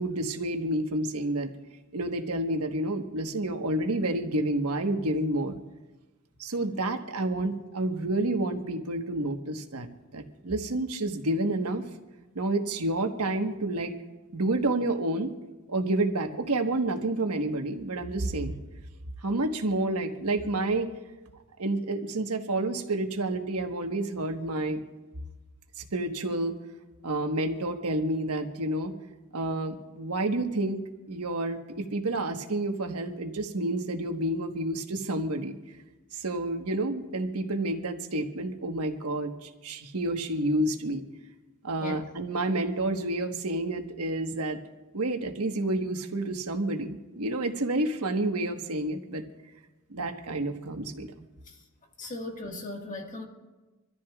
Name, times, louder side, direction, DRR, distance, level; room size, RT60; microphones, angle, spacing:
voice 1, 0.0-1.5 1.9-5.6 6.4-9.9 10.1-11.8 12.3-13.9 14.3-15.3 15.7-18.6 19.2-20.9 21.6-24.8 25.9-26.5 27.0-28.9 29.3-30.8 31.1-35.6 36.1-41.0 41.6-44.6 44.9-49.2 49.9-51.1, right 2 dB, 80° right, 4 dB, 1.3 m, -29 dB
voice 2, 52.0-53.3, left 1 dB, 35° left, 2 dB, 1.7 m, -38 dB
26.5 x 14.0 x 2.4 m, 1.1 s
head